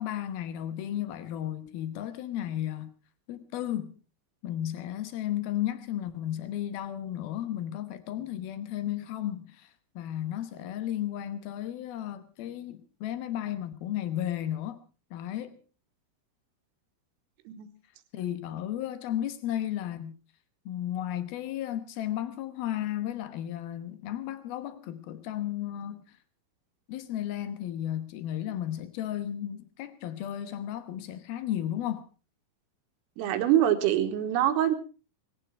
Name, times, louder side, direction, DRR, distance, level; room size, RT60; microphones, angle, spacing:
voice 1, 0.0-2.9 3.3-4.0 4.4-14.8 15.1-15.6 18.1-20.1 20.7-26.1 26.9-32.1, left 11 dB, 80° left, 2.2 m, -34 dB
voice 2, 33.2-34.8, right 11 dB, 80° right, 4.0 m, -24 dB
19.5 x 15.5 x 4.6 m
omnidirectional pair, 6.0 m